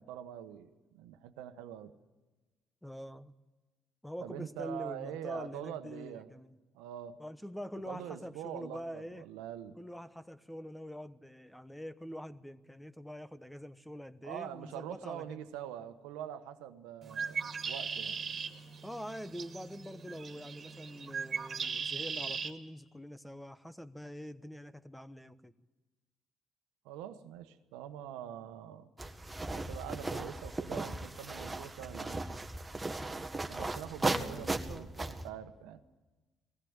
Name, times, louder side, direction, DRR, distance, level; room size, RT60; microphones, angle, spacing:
voice 1, 0.0-1.9 4.2-6.3 6.7-7.2 7.9-9.8 14.2-18.2 26.8-28.9 29.5-32.3 33.5-35.8, right 10 dB, 85° right, 1.2 m, -44 dB
voice 2, 2.8-3.3 4.0-6.5 7.2-9.3 9.8-15.4 18.8-25.5 34.0-34.9, equal, 5° left, 1.1 m, -45 dB
Bird, 17.0-22.5, right 5 dB, 45° right, 2.3 m, -39 dB
sound 1, 29.0-35.3, right 2 dB, 15° right, 1.7 m, -37 dB
19.5 x 15.5 x 8.9 m
supercardioid pair, 60°, 0 cm